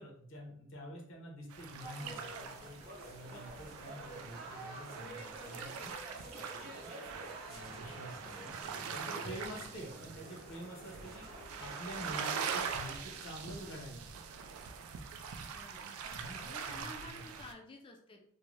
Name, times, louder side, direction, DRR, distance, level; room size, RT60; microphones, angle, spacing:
voice 1, 0.0-2.8 3.1-5.9 6.3-6.9 7.5-8.5 8.9-14.3 16.0-16.5 16.8-17.4, equal, 65° left, 0 dB, 0.7 m, -48 dB
sound 1, 1.5-17.5, right 6 dB, 85° right, 0.3 m, -43 dB
sound 2, 1.8-13.8, right 1 dB, 45° right, 0.6 m, -50 dB
voice 2, 15.5-16.0 16.4-18.2, left 2 dB, 25° left, 3 dB, 0.3 m, -52 dB
2.5 x 2.1 x 3.1 m, 0.67 s
head